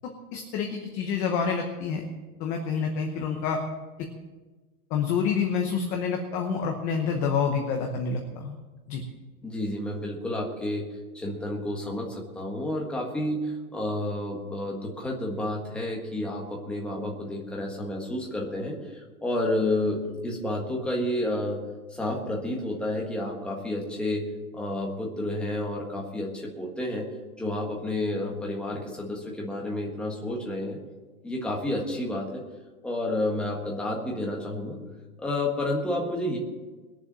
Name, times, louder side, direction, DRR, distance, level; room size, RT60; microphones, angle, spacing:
voice 1, 0.0-2.1 2.4-3.6 4.0-4.1 4.9-8.6 8.9-9.0, left 6 dB, 15° left, 2 dB, 0.9 m, -28 dB
voice 2, 9.4-10.9 11.1-21.6 21.9-30.8 31.2-32.4 32.8-34.8 35.2-36.4, left 1 dB, ahead, -2 dB, 1.6 m, -30 dB
20.5 x 7.1 x 7.5 m, 1.3 s
hypercardioid pair, 165°, 45 cm